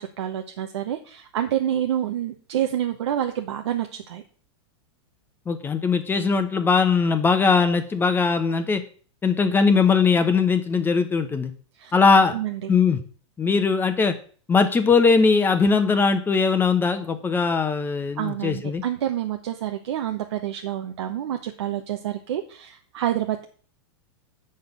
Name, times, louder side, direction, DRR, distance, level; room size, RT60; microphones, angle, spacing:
voice 1, 0.0-4.2 11.8-11.9 12.3-12.7 18.2-23.4, right 11 dB, 75° right, 5 dB, 1.0 m, -28 dB
voice 2, 5.5-8.8 9.2-11.5 11.9-12.4 12.7-13.0 13.4-14.2 14.5-18.8, left 5 dB, 15° left, 9 dB, 0.9 m, -20 dB
7.9 x 6.6 x 5.3 m, 0.42 s
hypercardioid pair, 130°, 15 cm